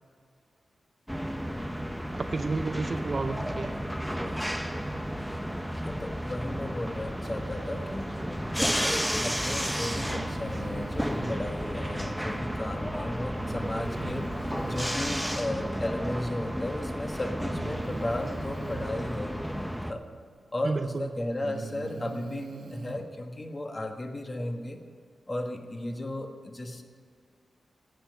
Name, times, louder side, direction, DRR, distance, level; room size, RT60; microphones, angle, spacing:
sound 1, 1.1-19.9, equal, ahead, 0.8 m, -32 dB
voice 1, 2.1-3.9 20.6-21.1, right 3 dB, 45° right, 8 dB, 0.6 m, -31 dB
voice 2, 5.8-8.1 8.5-14.3 14.6-20.0 20.5-24.8 25.3-26.8, left 1 dB, 30° left, 4 dB, 1.3 m, -35 dB
Breathing, 9.8-11.4 13.4-15.0 16.4-16.5 17.4-18.9 20.5-20.6 21.2-23.0, right 3 dB, 90° right, 1.8 m, -41 dB
17.0 x 5.9 x 9.3 m, 2.1 s
wide cardioid pair, 95°, 0 cm